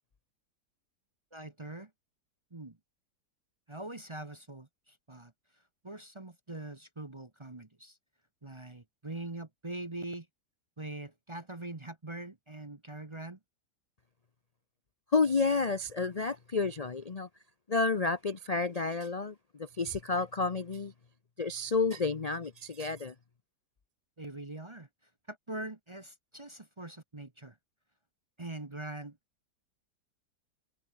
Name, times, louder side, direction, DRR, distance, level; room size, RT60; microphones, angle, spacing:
voice 1, 1.3-1.9 2.5-2.8 3.7-8.0 8.4-10.3 10.8-13.4 24.2-24.9 25.3-27.6 28.4-29.2, right 2 dB, 20° right, 1.0 m, -43 dB
voice 2, 15.1-17.3 17.7-20.9 21.4-23.1, left 4 dB, 35° left, 0.6 m, -30 dB
omnidirectional pair, 1.8 m